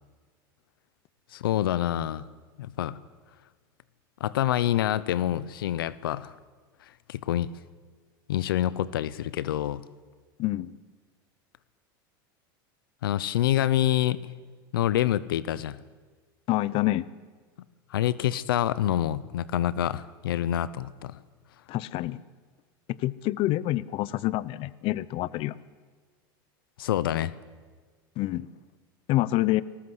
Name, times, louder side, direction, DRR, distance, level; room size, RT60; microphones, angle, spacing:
voice 1, 1.3-2.3 2.6-3.0 4.2-6.3 7.1-7.5 8.3-9.8 13.0-14.2 14.7-15.8 17.9-21.2 26.8-27.3, left 12 dB, 90° left, 18 dB, 0.8 m, -26 dB
voice 2, 10.4-10.7 16.5-17.1 21.7-22.2 23.0-25.6 28.2-28.5 29.1-29.6, left 16 dB, 50° left, 19 dB, 0.7 m, -27 dB
25.5 x 20.0 x 8.1 m, 1.5 s
supercardioid pair, 105°, 12 cm